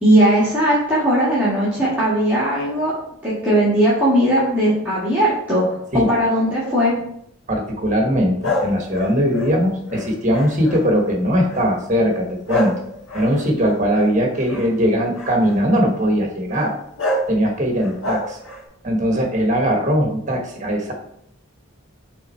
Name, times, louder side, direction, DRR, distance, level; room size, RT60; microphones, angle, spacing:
voice 1, 0.0-2.9 3.2-5.6 5.9-6.9, right 1 dB, 5° right, -10 dB, 1.5 m, -18 dB
voice 2, 7.5-12.7 13.1-16.7 17.3-18.4 18.8-20.9, equal, 35° right, 1 dB, 1.2 m, -20 dB
sound 1, 8.4-11.0 11.5-11.8 12.5-14.7 15.1-15.6 16.5-16.7 17.0-17.3 17.8-18.6, left 1 dB, 75° left, 1.5 m, -27 dB
5.7 x 3.8 x 4.3 m, 0.72 s
head